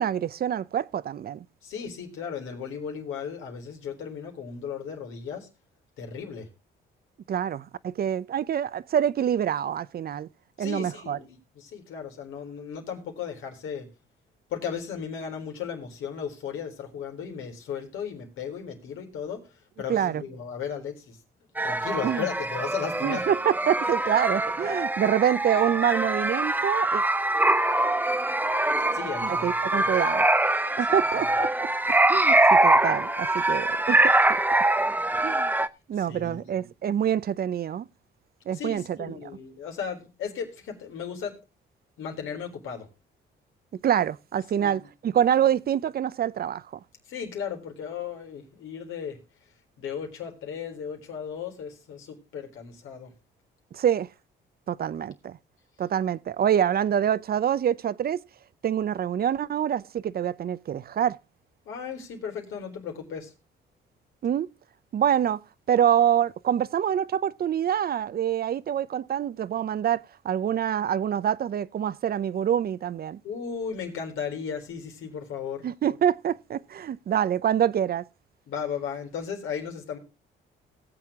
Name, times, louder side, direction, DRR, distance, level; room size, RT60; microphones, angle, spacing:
voice 1, 0.0-1.4 7.3-10.3 10.6-11.2 19.9-20.2 22.0-22.3 23.0-27.0 29.2-30.3 30.8-31.5 31.9-34.1 35.2-35.5 35.9-37.9 38.5-39.2 43.8-46.6 53.7-54.1 54.7-55.4 55.8-58.2 58.6-61.2 64.2-64.5 64.9-65.4 65.7-73.2 75.6-78.0, right 9 dB, 50° right, 0.6 m, -26 dB
voice 2, 1.6-5.5 6.0-6.5 10.6-13.9 14.5-19.4 19.8-21.2 21.6-23.3 28.9-29.9 30.9-31.3 36.0-36.5 38.5-41.3 42.0-42.9 44.6-44.8 47.1-49.2 49.8-53.1 61.7-63.3 73.2-75.6 78.5-80.0, left 7 dB, 85° left, 4.0 m, -35 dB
sound 1, 21.6-35.7, right 2 dB, 10° right, 0.7 m, -24 dB
18.5 x 7.7 x 3.6 m
cardioid pair, 90°, 20 cm